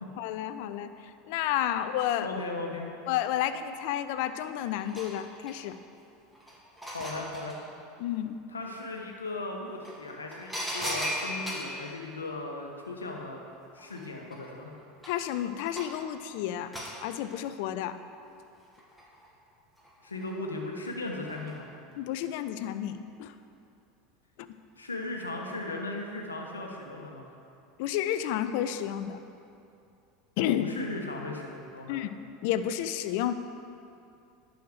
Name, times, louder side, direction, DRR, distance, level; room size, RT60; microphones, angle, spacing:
voice 1, 0.2-0.9 1.3-2.4 3.1-5.7 8.0-8.4 15.1-16.7 17.0-18.0 21.9-23.3 27.8-29.2 30.4-30.7 31.9-33.3, left 11 dB, 60° left, 11 dB, 0.5 m, -31 dB
voice 2, 2.2-2.9 6.9-7.6 8.5-13.4 13.7-14.7 20.0-21.7 24.8-27.2 30.5-32.0, left 2 dB, 90° left, 1 dB, 1.1 m, -37 dB
sound 1, 4.6-5.8 6.3-7.6 9.3-9.4 9.8-11.8 13.4-13.5 13.8-16.1 16.7-17.0 18.5-19.3 19.8-20.3 21.3-21.6 21.9-22.0, equal, ahead, 1.8 m, -37 dB
10.5 x 6.4 x 4.7 m, 2.6 s
hypercardioid pair, 80°, 0 cm